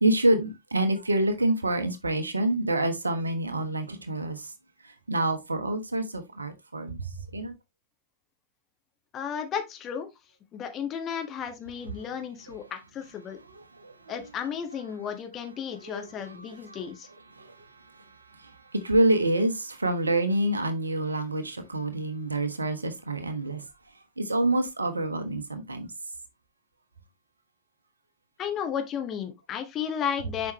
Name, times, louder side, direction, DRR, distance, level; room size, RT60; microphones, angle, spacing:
voice 1, 0.0-4.5 5.1-7.5 12.5-12.6 13.8-14.2 15.7-16.3 16.7-16.8 17.4-23.6 24.2-25.9, right 1 dB, 80° right, 1.2 m, -27 dB
voice 2, 9.1-10.1 10.5-13.4 14.1-17.1 28.4-30.5, left 8 dB, 30° left, 1.6 m, -33 dB
7.1 x 5.5 x 3.1 m
figure-of-eight pair, 90°, 0 cm